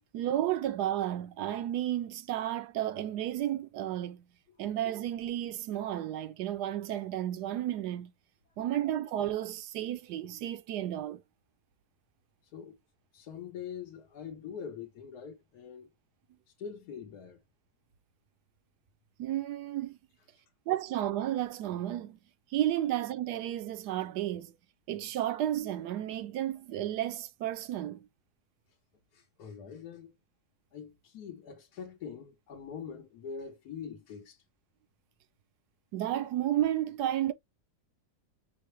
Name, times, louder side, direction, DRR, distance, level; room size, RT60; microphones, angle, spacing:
voice 1, 0.1-4.2 4.6-8.1 8.6-11.2 19.2-20.0 20.7-22.2 22.5-24.5 24.9-28.1 35.9-37.3, right 12 dB, 85° right, 1.2 m, -32 dB
voice 2, 13.1-15.9 16.6-17.4 29.1-30.1 30.7-34.4, left 7 dB, 75° left, 1.3 m, -43 dB
5.7 x 2.1 x 3.1 m
omnidirectional pair, 1.7 m